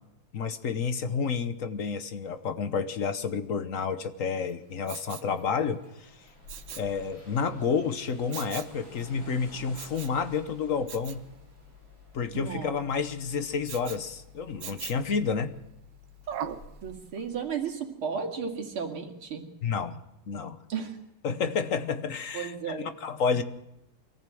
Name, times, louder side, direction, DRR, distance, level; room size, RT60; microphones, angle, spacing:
voice 1, 0.3-6.1 6.7-11.2 12.1-15.5 19.6-20.0 20.3-20.6 21.2-23.4, left 5 dB, 50° left, 10 dB, 1.1 m, -30 dB
Engine starting, 3.9-4.0 4.4-5.1 5.4-5.5 5.8-17.7, left 6 dB, 85° left, 6.2 m, -54 dB
sound 1, 4.5-15.7 16.1-16.2, equal, 70° left, 8.8 m, -56 dB
Respiratory sounds, 4.8-5.3 6.5-6.9 8.3-8.8 9.7-10.2 10.9-11.2 13.7-14.0 14.6-15.1 16.3-16.7 17.2-17.3, right 9 dB, 65° right, 1.6 m, -39 dB
voice 2, 12.3-12.7 16.8-19.4 20.7-21.0 22.3-22.9, right 6 dB, 85° right, 2 dB, 3.1 m, -34 dB
23.5 x 14.5 x 7.7 m, 0.89 s
omnidirectional pair, 2.3 m